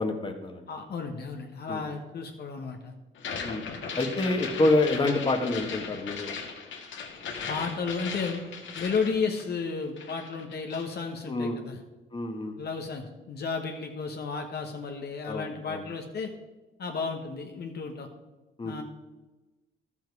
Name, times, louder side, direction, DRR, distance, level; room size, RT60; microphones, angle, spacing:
voice 1, 0.0-0.6 1.7-1.8 3.4-3.6 4.0-6.3 11.3-11.6 12.1-12.6 15.2-15.8 18.6-18.7, left 2 dB, 25° left, 4 dB, 1.5 m, -27 dB
voice 2, 0.7-2.9 7.5-8.4 8.7-11.8 12.6-16.3 16.8-18.1 18.6-18.8, left 5 dB, 55° left, 3 dB, 1.3 m, -33 dB
sound 1, 3.2-9.7 10.0-11.0, left 5 dB, 70° left, 1.7 m, -38 dB
12.0 x 7.4 x 4.8 m, 1.1 s
cardioid pair, 90°, 20 cm